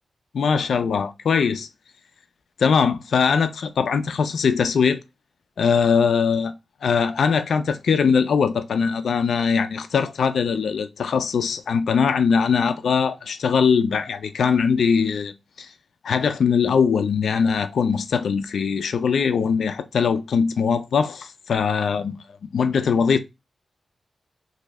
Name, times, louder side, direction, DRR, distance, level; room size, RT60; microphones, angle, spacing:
voice 1, 0.3-1.7 2.6-5.0 5.6-6.5 6.8-15.3 15.6-15.7 16.0-22.1 22.5-23.2, left 6 dB, 75° left, 0.4 m, -21 dB
3.2 x 2.7 x 3.4 m
wide cardioid pair, 150°, 0 cm